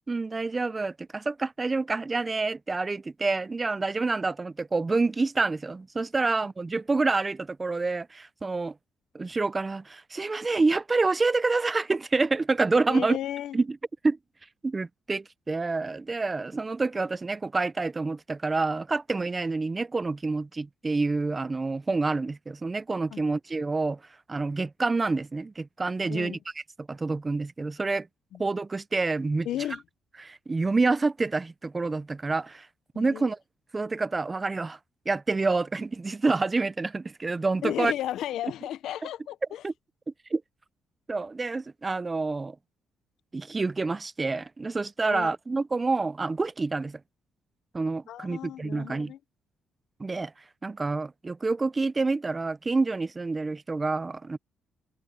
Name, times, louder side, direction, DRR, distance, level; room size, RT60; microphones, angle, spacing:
voice 1, 0.1-8.7 9.1-13.2 13.5-13.8 14.0-14.2 14.6-24.0 24.3-26.4 26.9-28.1 28.4-29.5 30.2-32.7 33.0-33.4 33.7-34.8 35.1-37.9 39.6-39.7 40.3-40.4 41.1-42.6 43.3-47.0 47.7-49.1 50.0-50.3 50.6-54.4, right 3 dB, 25° right, 0.6 m, -27 dB
voice 2, 12.9-13.6 23.1-23.2 26.0-26.4 28.3-28.4 29.5-29.8 32.9-33.3 37.6-39.6 45.1-45.3 48.1-49.2, left 12 dB, 80° left, 0.6 m, -34 dB
cardioid pair, 110°, 0 cm